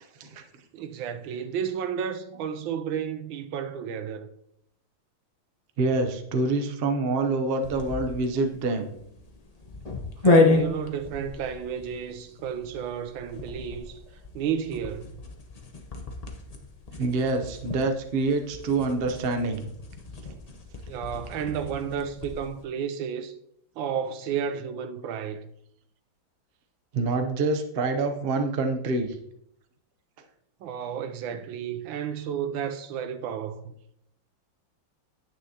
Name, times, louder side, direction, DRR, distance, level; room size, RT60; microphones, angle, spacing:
voice 1, 0.7-4.3 10.2-14.0 14.3-15.1 20.9-23.3 23.8-25.5 30.6-33.7, right 8 dB, 80° right, 1.4 m, -32 dB
voice 2, 5.8-8.9 17.0-19.7 26.9-29.1, right 3 dB, 50° right, 0.7 m, -26 dB
sound 1, 7.6-22.5, left 3 dB, 85° left, 0.3 m, -30 dB
9.5 x 8.7 x 2.8 m
omnidirectional pair, 2.1 m